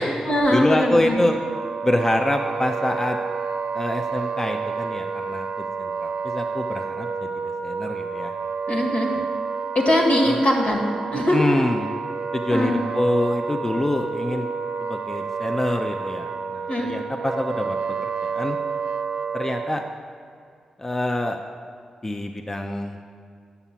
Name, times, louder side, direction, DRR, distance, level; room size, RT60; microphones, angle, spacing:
voice 1, 0.0-1.2 8.7-9.1 9.8-11.4 12.5-12.9 16.7-16.9, left 1 dB, 70° left, -1 dB, 1.8 m, -21 dB
voice 2, 0.5-1.4 1.8-3.2 3.7-7.3 7.6-8.3 10.2-10.4 11.1-11.9 12.3-14.5 14.8-17.8 18.2-18.6 19.3-19.8 20.8-21.4 22.0-23.0, left 1 dB, 20° left, 3 dB, 0.5 m, -25 dB
Wind instrument woodwind instrument, 0.8-20.0, right 5 dB, 70° right, 0.5 m, -30 dB
7.1 x 6.9 x 7.3 m, 2.2 s
cardioid pair, 80°, 2 cm